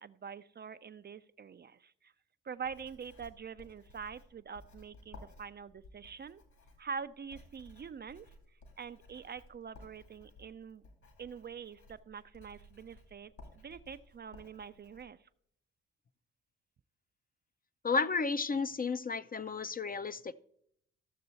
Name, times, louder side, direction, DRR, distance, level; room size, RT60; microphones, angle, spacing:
voice 1, 0.0-2.1 2.4-6.4 6.8-8.3 8.8-10.8 11.2-15.2, right 6 dB, 35° right, 13 dB, 0.4 m, -45 dB
Writing, 2.6-15.0, left 2 dB, 65° left, 2.8 m, -57 dB
voice 2, 17.8-20.3, left 4 dB, 30° left, 13 dB, 0.5 m, -32 dB
13.5 x 6.8 x 4.0 m, 0.72 s
hypercardioid pair, 45°, 31 cm